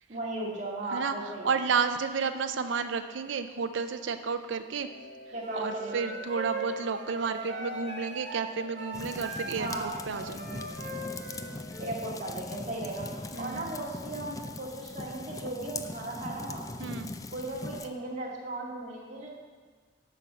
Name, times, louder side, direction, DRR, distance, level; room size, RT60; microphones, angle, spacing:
voice 1, 0.1-1.5 5.3-6.1 9.6-9.9 11.8-16.7 17.3-19.3, right 2 dB, 40° right, -3 dB, 2.0 m, -36 dB
voice 2, 1.4-4.9 5.5-10.7 13.3-13.7 16.8-17.1, right 5 dB, 80° right, 8 dB, 0.5 m, -31 dB
sound 1, 4.7-13.5, left 2 dB, 85° left, 2.6 m, -50 dB
sound 2, 5.4-11.9, right 2 dB, 60° right, 2.4 m, -39 dB
sound 3, 8.9-17.9, left 2 dB, 20° left, 0.3 m, -40 dB
9.2 x 6.0 x 6.8 m, 1.5 s
head